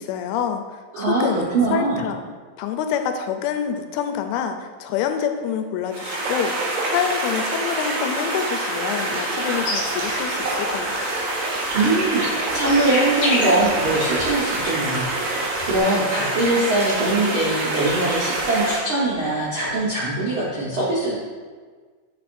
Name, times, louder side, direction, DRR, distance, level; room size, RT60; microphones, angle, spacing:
voice 1, 0.0-1.4 1.7-2.3 2.6-11.1, left 8 dB, 85° left, 7 dB, 2.5 m, -27 dB
voice 2, 0.9-2.0 11.7-21.2, right 2 dB, 90° right, -9 dB, 1.1 m, -22 dB
sound 1, 5.9-18.8, right 2 dB, 65° right, 3.0 m, -25 dB
sound 2, 9.4-10.9 11.1-15.8, left 2 dB, 60° left, 1.8 m, -31 dB
9.8 x 4.2 x 2.6 m, 1.5 s
omnidirectional pair, 4.4 m